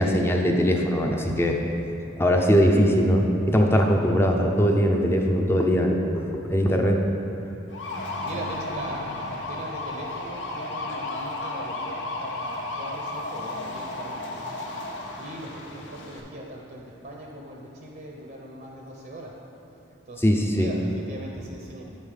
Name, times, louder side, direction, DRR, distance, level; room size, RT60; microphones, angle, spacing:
voice 1, 0.0-1.6 2.2-7.0 20.2-20.8, equal, 10° left, 2 dB, 0.5 m, -21 dB
sound 1, 7.7-16.2, left 2 dB, 75° left, 1.0 m, -33 dB
voice 2, 8.2-14.5 15.2-19.3 20.1-20.2 20.6-21.8, right 1 dB, 45° right, -1 dB, 0.6 m, -40 dB
8.0 x 5.4 x 4.9 m, 2.9 s
head